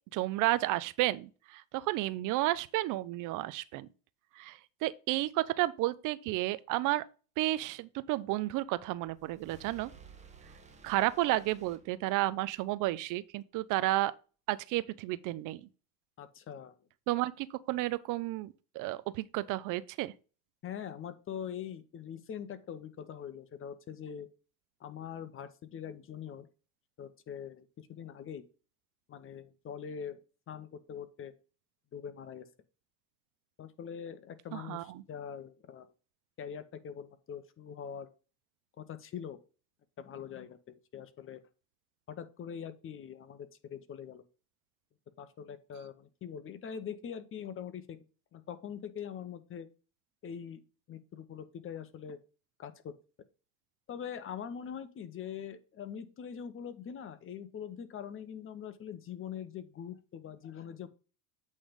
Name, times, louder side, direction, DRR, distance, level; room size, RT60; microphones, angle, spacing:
voice 1, 0.1-3.9 4.4-7.0 7.4-9.9 10.8-14.1 14.5-15.6 17.1-20.1 34.5-35.0, right 17 dB, 45° right, 0.6 m, -32 dB
sound 1, 8.8-12.6, right 4 dB, 15° right, 1.3 m, -56 dB
voice 2, 16.2-16.8 20.6-24.3 24.8-26.5 27.0-28.4 29.1-30.2 30.5-31.3 31.9-32.5 33.6-35.9 36.4-38.1 38.8-39.4 40.0-41.4 42.1-44.2 45.2-48.0 48.3-49.7 50.2-50.6 50.9-52.2 52.6-52.9 53.9-60.9, left 8 dB, 30° left, 0.9 m, -43 dB
8.5 x 3.5 x 5.1 m
hypercardioid pair, 100°, 46 cm